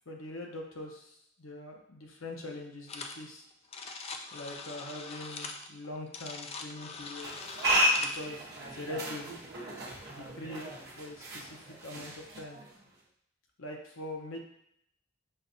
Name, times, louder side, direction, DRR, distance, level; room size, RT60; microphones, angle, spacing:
voice 1, 0.1-3.4 4.3-7.5 8.0-9.4 10.1-12.6 13.6-14.4, left 1 dB, 85° left, 1 dB, 0.8 m, -43 dB
sound 1, 2.9-3.2 3.5-8.3, left 4 dB, 30° left, 0.3 m, -42 dB
sound 2, 7.2-12.9, equal, 50° right, 0.9 m, -33 dB
6.5 x 2.3 x 2.6 m, 0.73 s
head